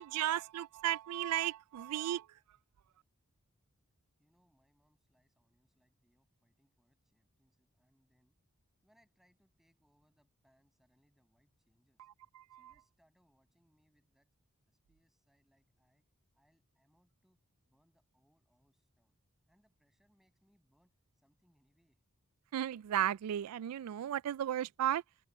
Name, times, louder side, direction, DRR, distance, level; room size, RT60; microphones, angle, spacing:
voice 1, 0.0-2.2 22.5-25.0, right 11 dB, 90° right, 0.3 m, -34 dB
voice 2, 4.2-8.4 8.8-12.1 12.5-14.3 14.7-16.1 16.3-19.2 19.5-22.0, equal, ahead, 6.4 m, -75 dB
head